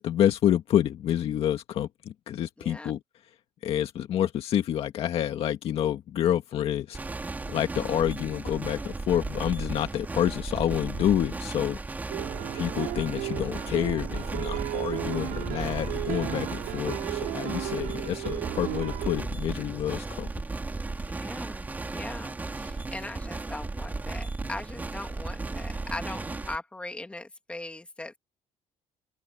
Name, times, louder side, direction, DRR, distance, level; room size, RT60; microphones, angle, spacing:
voice 1, 0.0-3.0 3.6-7.0 7.5-11.8 12.5-20.3, left 11 dB, 45° left, 1.9 m, -28 dB
voice 2, 2.6-2.9 21.1-28.2, left 2 dB, 10° left, 2.4 m, -40 dB
sound 1, 6.9-26.6, right 3 dB, 10° right, 4.3 m, -35 dB
sound 2, 12.1-19.2, right 18 dB, 90° right, 5.3 m, -35 dB
open air
cardioid pair, 170°, 14 cm